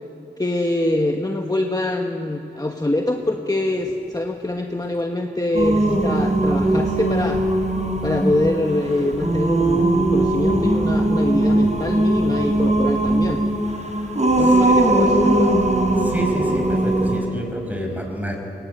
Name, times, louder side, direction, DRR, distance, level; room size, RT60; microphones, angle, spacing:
voice 1, 0.4-7.4 8.0-13.4 14.4-15.5, left 1 dB, 20° left, 3 dB, 1.3 m, -24 dB
Singing, 5.5-17.2, right 1 dB, 40° right, 3.9 m, -19 dB
voice 2, 16.0-18.4, equal, 10° right, 2 dB, 5.5 m, -28 dB
23.0 x 19.0 x 9.2 m, 3.0 s
wide cardioid pair, 65°, 19 cm